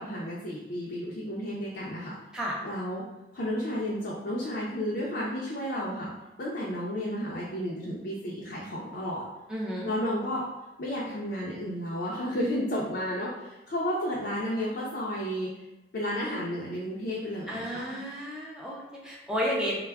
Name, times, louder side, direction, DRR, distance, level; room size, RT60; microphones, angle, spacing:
voice 1, 0.0-2.2 2.6-3.0 3.3-6.1 6.4-9.2 9.8-10.5 10.8-15.5 15.9-18.0, equal, 60° left, -6 dB, 0.5 m, -32 dB
voice 2, 9.5-9.9 17.5-19.8, equal, 5° right, -5 dB, 0.4 m, -32 dB
2.2 x 2.0 x 3.4 m, 0.98 s
head